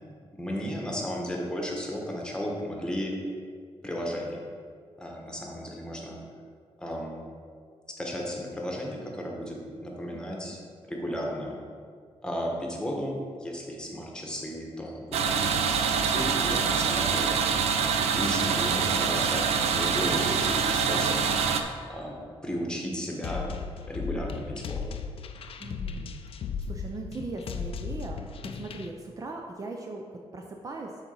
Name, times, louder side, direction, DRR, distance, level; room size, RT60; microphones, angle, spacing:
voice 1, 0.3-3.2 3.8-4.4 5.0-6.2 6.8-7.2 7.9-11.6 12.2-17.4 18.1-21.2 21.9-23.5 23.9-24.8, equal, 10° left, -1 dB, 1.2 m, -34 dB
voice 2, 10.1-10.6 25.6-26.2 26.7-28.2 28.5-30.0 30.3-30.9, right 3 dB, 35° right, 2 dB, 0.5 m, -39 dB
sound 1, 15.1-21.6, right 6 dB, 85° right, 0.5 m, -25 dB
sound 2, 23.2-28.9, left 5 dB, 65° left, 0.4 m, -36 dB
7.2 x 4.0 x 5.5 m, 2.1 s
cardioid pair, 120°, 11 cm